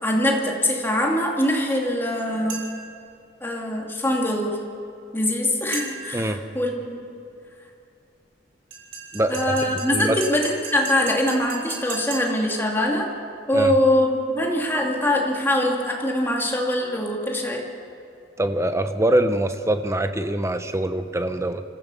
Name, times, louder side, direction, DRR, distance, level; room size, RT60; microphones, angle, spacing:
voice 1, 0.0-2.6 3.4-4.6 5.1-7.1 9.3-13.1 13.5-17.7, left 1 dB, 10° left, 0 dB, 2.4 m, -23 dB
sound 1, 2.5-2.9 5.7-6.2 8.7-12.5, right 5 dB, 80° right, 5.0 m, -36 dB
voice 2, 9.1-10.2 13.5-13.7 18.4-21.6, right 1 dB, 15° right, 9 dB, 0.9 m, -24 dB
25.0 x 15.0 x 7.0 m, 2.6 s
head